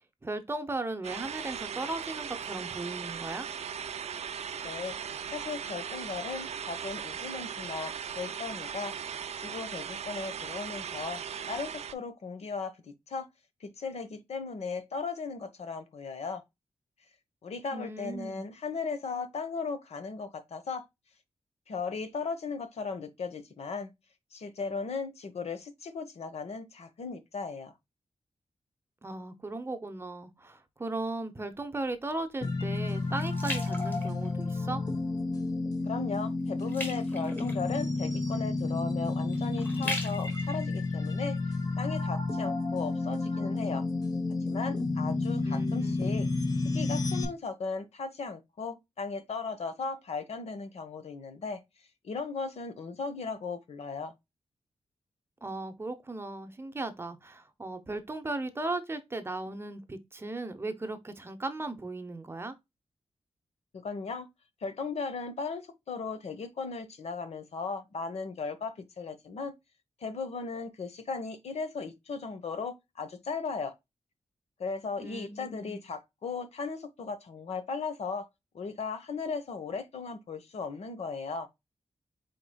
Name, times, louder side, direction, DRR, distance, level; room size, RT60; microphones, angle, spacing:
voice 1, 0.2-3.5 17.7-18.4 29.0-34.8 45.4-46.2 55.4-62.5 75.0-75.8, right 2 dB, 20° right, 0.7 m, -37 dB
sound 1, 1.0-11.9, right 7 dB, 75° right, 0.5 m, -38 dB
voice 2, 4.6-5.0 5.3-8.9 9.4-11.2 11.5-13.3 13.6-16.4 17.4-20.8 21.7-23.9 24.3-27.7 35.8-41.4 41.8-43.8 44.5-46.3 46.7-51.6 52.0-54.1 63.7-64.3 64.6-69.5 70.0-73.7 74.6-78.3 78.5-81.5, left 4 dB, 70° left, 0.9 m, -37 dB
sound 2, 31.5-34.8 35.3-35.6 35.9-41.9 42.4-42.5, left 1 dB, 20° left, 1.7 m, -41 dB
sound 3, 32.4-47.2, left 3 dB, 35° left, 0.9 m, -31 dB
4.8 x 4.3 x 2.2 m
wide cardioid pair, 170°, 11 cm